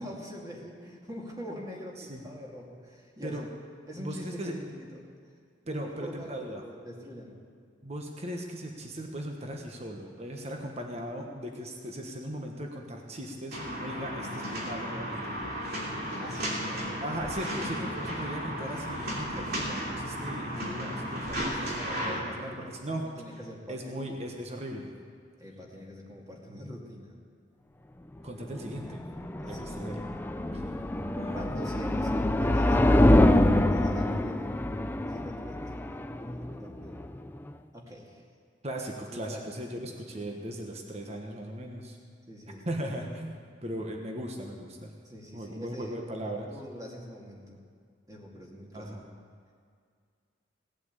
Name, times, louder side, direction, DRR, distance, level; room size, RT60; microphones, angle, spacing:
voice 1, 0.0-3.5 3.9-5.1 5.6-6.3 6.6-7.4 16.2-17.2 17.8-18.3 21.3-24.2 25.4-27.2 28.6-28.7 29.4-29.8 31.2-32.1 32.4-33.3 33.7-34.5 35.1-37.0 37.7-38.3 39.1-40.2 42.3-42.6 45.0-47.6 48.1-48.9, equal, 20° right, -2 dB, 2.4 m, -44 dB
voice 2, 4.0-4.6 5.7-6.6 7.8-15.3 17.0-23.1 23.7-24.9 28.2-30.0 30.5-30.6 31.1-31.4 38.6-42.0 42.6-44.9 45.3-46.5 48.7-49.1, right 1 dB, 35° right, 2 dB, 1.3 m, -38 dB
sound 1, 13.5-22.2, equal, 55° right, 2.9 m, -34 dB
Abstract Spaceship Flyby Ascending A, 28.5-37.5, left 1 dB, 10° left, 0.4 m, -25 dB
17.5 x 8.3 x 8.1 m, 2.1 s
head